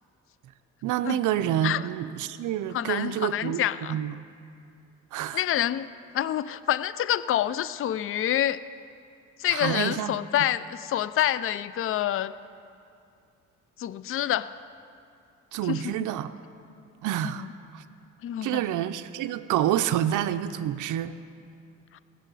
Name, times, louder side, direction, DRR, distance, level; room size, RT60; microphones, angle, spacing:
voice 1, 0.8-3.6 3.9-4.1 5.1-5.4 9.5-10.1 15.5-16.3 17.0-17.5 17.7-17.8 18.4-21.1, right 11 dB, 80° right, 9 dB, 0.6 m, -28 dB
voice 2, 2.7-4.0 5.3-8.6 9.4-12.3 13.8-14.5 15.6-16.0 17.2-17.5 18.2-18.6 21.9-22.0, left 12 dB, 45° left, 16 dB, 0.4 m, -27 dB
18.5 x 6.2 x 8.3 m, 2.5 s
cardioid pair, 90°, 30 cm